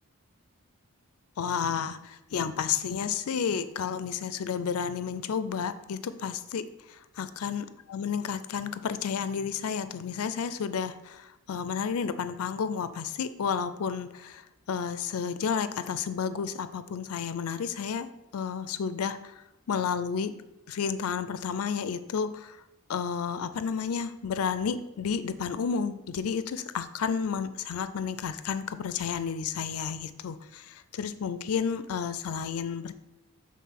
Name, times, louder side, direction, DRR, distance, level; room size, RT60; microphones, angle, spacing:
voice 1, 1.4-6.6 7.2-14.4 14.7-19.4 19.7-20.3 20.7-22.6 22.9-32.9, left 6 dB, 80° left, 12 dB, 0.4 m, -31 dB
7.4 x 3.7 x 5.8 m, 0.91 s
head